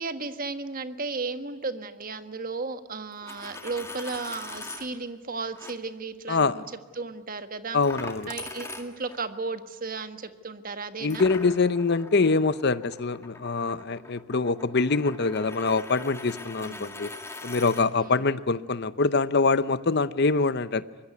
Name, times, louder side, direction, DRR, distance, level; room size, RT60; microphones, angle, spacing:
voice 1, 0.0-6.6 7.0-7.8 8.3-11.2 16.6-16.9 18.0-18.2, right 4 dB, 45° right, 9 dB, 1.5 m, -34 dB
Coin (dropping), 3.1-4.9 5.5-5.7 7.8-9.2 11.1-17.9, left 2 dB, 15° left, 2.1 m, -41 dB
voice 2, 7.7-8.3 11.0-17.1 17.4-20.8, left 4 dB, 55° left, 14 dB, 0.8 m, -24 dB
24.5 x 21.0 x 9.5 m, 1.4 s
head